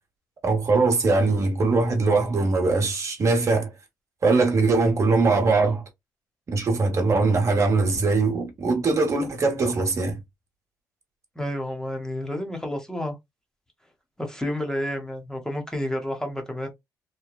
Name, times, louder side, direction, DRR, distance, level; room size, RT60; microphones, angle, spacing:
voice 1, 0.4-3.7 4.2-5.8 6.5-10.2, right 3 dB, 45° right, 1.0 m, -21 dB
voice 2, 11.4-13.1 14.2-16.7, left 1 dB, 10° left, 0.9 m, -30 dB
3.0 x 2.1 x 2.2 m
cardioid pair, 75°, 7 cm